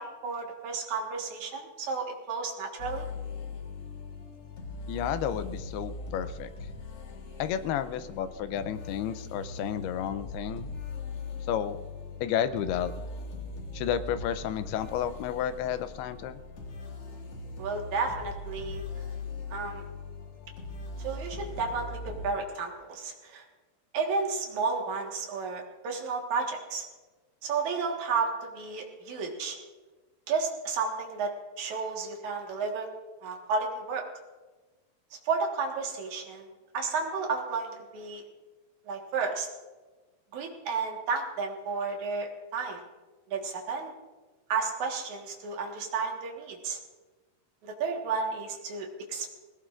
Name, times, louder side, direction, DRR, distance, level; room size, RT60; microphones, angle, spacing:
voice 1, 0.0-3.1 17.6-18.8 19.5-19.8 21.0-23.5 23.9-26.9 27.4-29.6 30.3-31.3 31.6-32.9 33.2-34.0 35.2-36.5 36.7-38.2 38.8-39.5 40.3-42.8 43.3-43.9 44.5-46.8 47.6-49.3, right 4 dB, 55° right, 1 dB, 2.5 m, -32 dB
sound 1, 2.8-22.3, left 3 dB, 55° left, 1.6 m, -40 dB
voice 2, 4.9-6.5 7.4-10.7 11.5-11.8 12.2-12.9 13.7-16.4, left 9 dB, 80° left, 11 dB, 2.6 m, -31 dB
20.5 x 17.5 x 2.5 m, 1.2 s
omnidirectional pair, 4.8 m